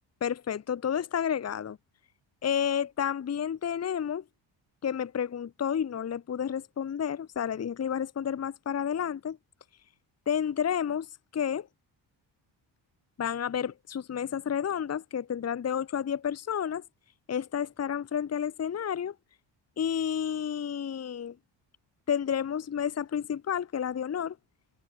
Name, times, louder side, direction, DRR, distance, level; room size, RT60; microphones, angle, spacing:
voice 1, 0.2-1.8 2.4-4.2 4.8-9.4 10.3-11.1 11.3-11.7 13.2-16.8 17.3-19.1 19.8-21.4 22.1-24.4, left 8 dB, 35° left, 0.9 m, -30 dB
cardioid pair, 125°, 45 cm